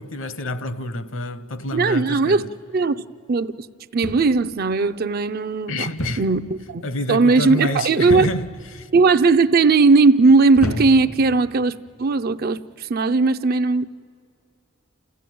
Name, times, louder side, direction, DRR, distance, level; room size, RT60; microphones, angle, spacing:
voice 1, 0.0-2.5 5.7-6.4 6.8-8.9, left 1 dB, 60° left, 1.0 m, -28 dB
voice 2, 1.7-3.5 3.9-5.9 6.2-6.4 6.7-6.8 7.1-8.3 8.9-13.8, right 4 dB, 45° right, 0.5 m, -18 dB
sound 1, 4.0-4.5 6.0-6.4 6.7-7.1 8.1-8.6 9.3-9.7 10.5-11.2 12.1-12.4, equal, 80° left, 2.9 m, -30 dB
29.0 x 15.0 x 9.3 m
head